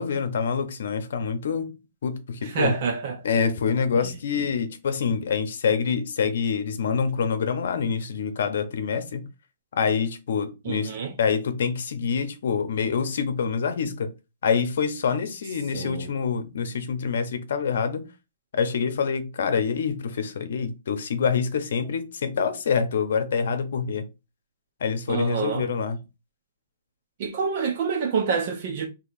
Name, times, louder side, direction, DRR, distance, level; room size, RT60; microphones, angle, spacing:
voice 1, 0.0-1.7 2.0-2.7 3.2-9.2 9.7-10.9 11.2-14.1 14.4-18.1 18.5-24.0 24.8-26.0, left 6 dB, 65° left, 0.8 m, -26 dB
voice 2, 2.4-3.2 10.6-11.2 15.7-16.1 25.1-25.7 27.2-28.9, right 5 dB, 40° right, 0.7 m, -27 dB
2.9 x 2.8 x 4.1 m
hypercardioid pair, 165°, 0 cm